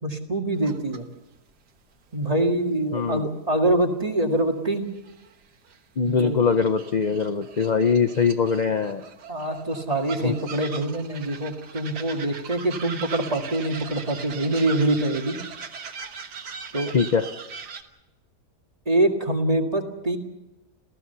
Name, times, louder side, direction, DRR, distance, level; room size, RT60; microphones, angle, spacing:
voice 1, 0.0-1.1 2.1-4.8 6.0-6.4 9.3-15.4 16.7-16.9 18.9-20.2, right 1 dB, 25° right, 3 dB, 2.0 m, -24 dB
sound 1, 0.6-1.0 1.3-1.4 3.1-3.2 3.7-3.8 4.9-5.8 6.1-17.8, right 6 dB, 80° right, 2.0 m, -40 dB
voice 2, 2.9-3.3 6.0-9.0 10.2-10.3 16.9-17.3, left 5 dB, 45° left, 8 dB, 0.6 m, -22 dB
28.0 x 16.0 x 6.8 m, 1.0 s
omnidirectional pair, 1.7 m